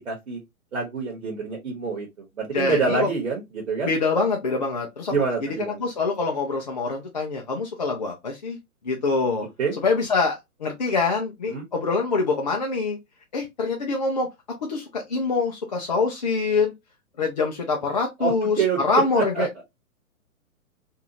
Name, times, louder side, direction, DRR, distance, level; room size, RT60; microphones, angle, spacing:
voice 1, 0.1-0.4 0.7-2.1 2.4-3.9 5.1-5.8 9.6-9.7 11.5-11.6 18.2-18.8 19.3-19.4, right 4 dB, 55° right, 1.2 m, -26 dB
voice 2, 2.5-3.1 3.8-5.1 5.6-8.6 8.8-9.5 9.8-13.0 13.3-14.3 14.7-16.7 17.2-19.5, left 4 dB, 30° left, 0.4 m, -25 dB
2.7 x 2.4 x 2.8 m
figure-of-eight pair, 125°, 43 cm